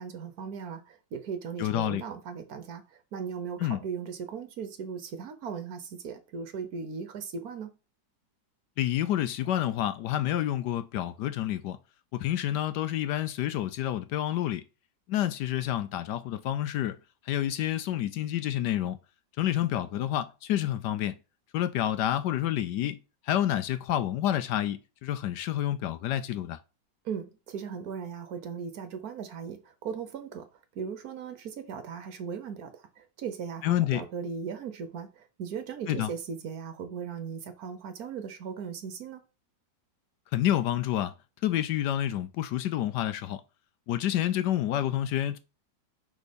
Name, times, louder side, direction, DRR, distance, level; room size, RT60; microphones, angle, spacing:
voice 1, 0.0-2.8 3.1-7.7 27.0-30.5 30.7-39.2, right 6 dB, 60° right, 1.2 m, -38 dB
voice 2, 1.6-2.0 3.6-3.8 8.8-11.8 12.1-14.6 15.1-17.0 17.3-19.0 19.4-21.2 21.5-23.0 23.3-26.6 33.6-34.0 35.9-36.1 40.3-41.1 41.4-43.4 43.9-45.4, left 12 dB, 75° left, 1.1 m, -28 dB
6.3 x 3.6 x 5.1 m
omnidirectional pair, 2.0 m